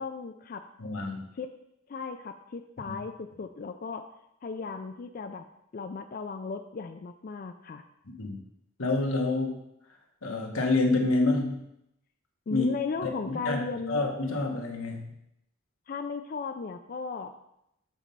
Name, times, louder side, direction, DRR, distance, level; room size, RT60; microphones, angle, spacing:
voice 1, 0.0-0.6 1.3-1.5 1.9-4.1 4.4-5.5 5.7-7.8 12.5-14.0 15.9-17.3, left 4 dB, 45° left, 6 dB, 0.3 m, -36 dB
voice 2, 0.8-1.2 2.9-3.0 8.1-8.4 8.8-9.5 10.2-11.6 12.5-12.7 13.0-13.6 13.9-15.1, left 2 dB, 90° left, 2 dB, 1.2 m, -28 dB
7.2 x 4.3 x 5.4 m, 0.80 s
head